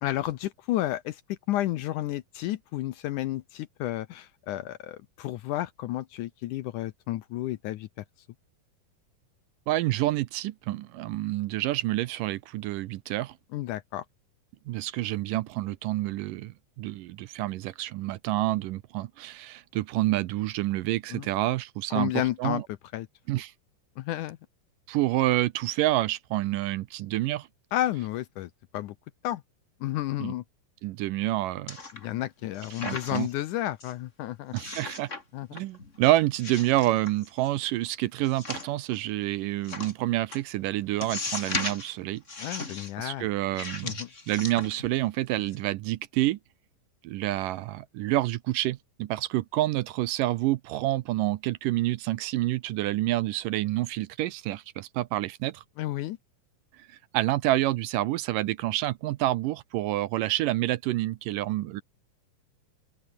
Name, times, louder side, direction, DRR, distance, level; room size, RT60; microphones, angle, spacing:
voice 1, 0.0-7.9 13.5-14.1 21.1-21.3 21.9-22.6 22.9-23.1 24.0-24.4 27.7-29.0 29.2-29.4 29.8-30.4 31.9-34.5 35.3-35.7 42.4-43.3 43.8-44.1 55.8-56.2, left 14 dB, 75° left, 2.0 m, -31 dB
voice 2, 9.7-13.4 14.7-22.1 22.4-22.6 23.3-23.5 24.9-27.5 30.2-30.3 30.8-31.8 32.8-33.3 34.5-35.1 35.5-42.2 42.5-42.6 43.0-46.4 47.0-55.6 57.1-61.8, right 16 dB, 75° right, 2.2 m, -28 dB
sound 1, 31.7-32.2 32.5-33.4 33.8-33.9 34.6-35.2 35.5-36.0 36.4-37.5 38.2-39.0 39.6-39.9 40.3-40.4 41.0-41.9 42.3-42.9 43.5-45.0 45.4-45.5, left 3 dB, 20° left, 2.8 m, -37 dB
omnidirectional pair, 4.2 m